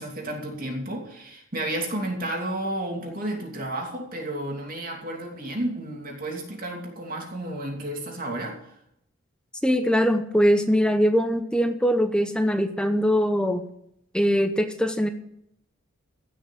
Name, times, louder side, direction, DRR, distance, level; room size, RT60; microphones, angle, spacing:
voice 1, 0.0-8.7, right 1 dB, 40° right, 0 dB, 2.8 m, -32 dB
voice 2, 9.6-13.7 14.1-15.1, equal, 5° left, 7 dB, 0.8 m, -22 dB
16.0 x 6.2 x 8.3 m, 0.75 s
head